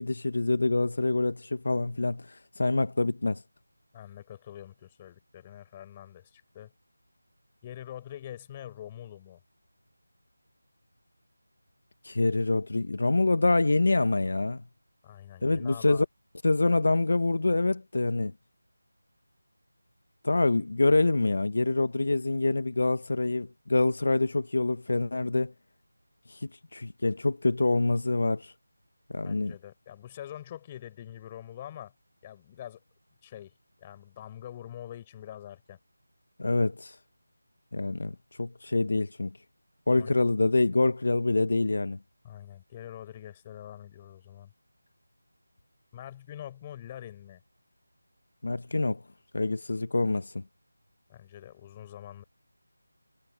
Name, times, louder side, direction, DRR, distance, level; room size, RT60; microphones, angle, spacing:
voice 1, 0.0-3.4 12.0-14.6 15.4-16.1 16.4-18.3 20.2-25.5 26.3-28.5 29.1-29.5 36.4-37.0 37.7-39.3 39.9-42.0 48.4-49.0 49.3-50.4, left 2 dB, 50° left, 0.7 m, -26 dB
voice 2, 3.9-6.7 7.6-9.4 15.0-16.0 29.2-31.9 32.2-32.8 33.2-33.5 33.8-35.8 39.9-40.2 42.2-44.5 45.9-47.4 51.1-52.2, left 11 dB, 10° left, 4.1 m, -44 dB
figure-of-eight pair, 175°, 0 cm